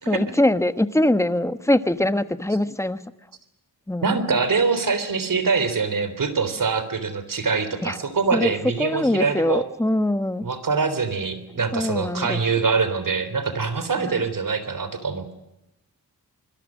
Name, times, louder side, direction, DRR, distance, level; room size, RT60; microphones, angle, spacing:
voice 1, 0.0-3.0 3.9-4.2 7.8-8.0 8.3-8.5 8.8-10.5 11.7-12.4 14.0-14.2, left 1 dB, 10° left, 11 dB, 1.2 m, -22 dB
voice 2, 4.0-9.6 10.4-15.3, right 5 dB, 60° right, 12 dB, 3.7 m, -24 dB
26.0 x 21.5 x 6.4 m, 0.90 s
wide cardioid pair, 115°, 37 cm